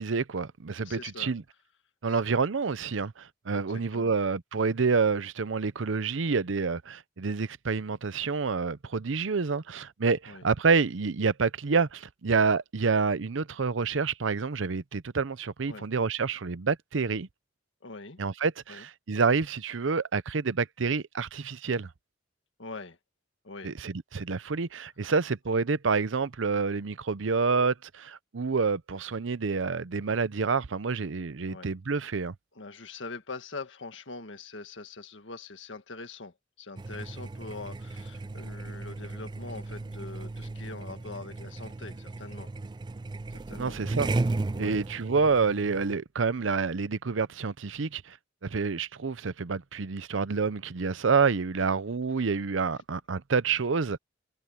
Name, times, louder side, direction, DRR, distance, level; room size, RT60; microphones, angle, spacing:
voice 1, 0.0-1.4 2.0-17.3 18.2-21.9 23.6-32.3 43.6-44.1 44.6-48.2 48.4-54.0, right 4 dB, 85° right, 0.7 m, -28 dB
voice 2, 0.8-1.4 2.1-2.4 3.5-4.2 6.2-6.3 10.3-10.5 15.7-15.9 17.8-18.2 18.7-18.9 22.6-23.0 23.4-23.7 25.0-25.1 31.5-31.7 32.5-42.5 43.3-43.8 44.6-44.8 51.6-51.7 52.1-52.4, left 3 dB, 75° left, 1.8 m, -43 dB
sound 1, 36.8-46.0, right 2 dB, 25° right, 0.4 m, -35 dB
head